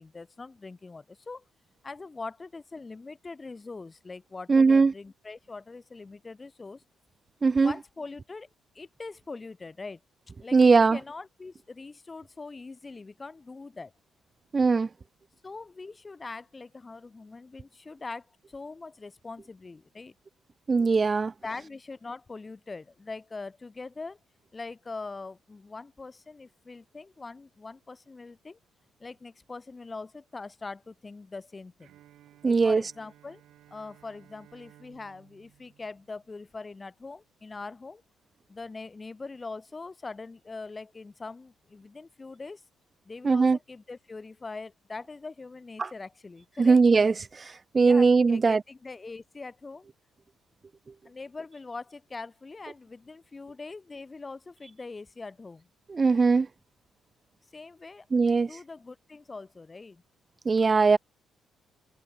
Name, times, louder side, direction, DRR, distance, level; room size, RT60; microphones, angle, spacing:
voice 1, 0.0-1.4 1.8-6.8 7.6-8.5 8.7-10.0 10.4-13.9 15.4-20.1 21.4-24.2 24.5-28.6 29.0-31.9 32.4-33.4 33.7-38.0 38.5-42.6 43.0-46.8 47.8-49.9 51.0-55.7 57.5-60.0, left 3 dB, 25° left, 3.2 m, -42 dB
voice 2, 4.5-4.9 7.4-7.7 10.5-11.0 14.5-14.9 20.7-21.3 32.4-32.8 43.2-43.6 45.8-45.9 46.6-48.6 55.9-56.5 58.1-58.5 60.4-61.0, right 4 dB, 30° right, 1.2 m, -20 dB
Bowed string instrument, 31.8-36.7, right 13 dB, 80° right, 7.8 m, -58 dB
cardioid pair, 90°, 0 cm